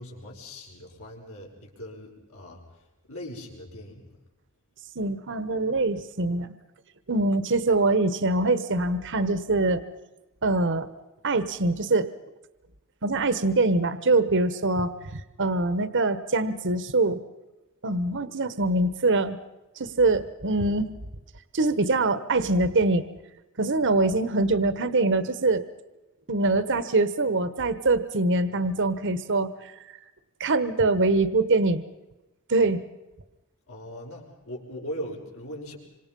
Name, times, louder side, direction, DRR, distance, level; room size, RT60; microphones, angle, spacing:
voice 1, 0.0-4.2 33.7-35.8, equal, 70° left, -1 dB, 6.1 m, -40 dB
voice 2, 4.9-6.5 7.1-9.8 10.4-10.9 11.2-12.1 13.0-17.2 17.8-19.4 19.8-20.9 21.5-23.1 23.6-25.6 26.3-30.0 30.4-31.8 32.5-32.8, right 2 dB, 55° right, 13 dB, 1.2 m, -24 dB
26.5 x 26.0 x 5.5 m, 1.0 s
head